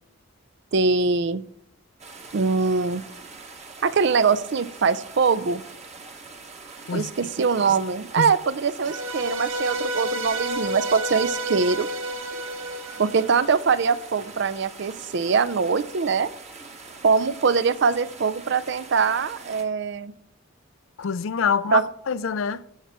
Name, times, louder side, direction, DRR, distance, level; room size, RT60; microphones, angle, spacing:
voice 1, 0.7-1.4 2.3-3.0 3.8-5.6 6.9-11.9 13.0-16.3 17.0-20.1 21.7-21.8, right 5 dB, 55° right, 0.4 m, -22 dB
sound 1, 2.0-19.6, right 4 dB, 30° right, 1.3 m, -43 dB
sound 2, 8.8-14.1, right 1 dB, 70° right, 1.1 m, -31 dB
voice 2, 21.0-22.6, left 6 dB, 70° left, 0.4 m, -26 dB
14.5 x 7.3 x 3.5 m
head